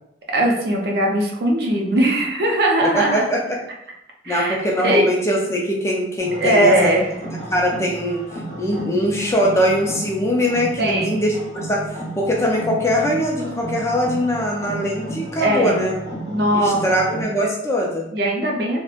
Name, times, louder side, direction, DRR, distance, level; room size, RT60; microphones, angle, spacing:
voice 1, 0.3-3.3 4.2-5.1 6.4-7.0 10.8-11.1 15.4-15.8 16.3-16.8 18.1-18.8, right 1 dB, 60° right, 0 dB, 0.5 m, -19 dB
voice 2, 2.8-3.6 4.3-6.9 7.5-16.0 16.5-18.1, equal, 15° left, -1 dB, 0.3 m, -22 dB
sound 1, 6.2-17.2, right 1 dB, 35° right, 0.9 m, -33 dB
2.9 x 2.0 x 2.3 m, 0.81 s
head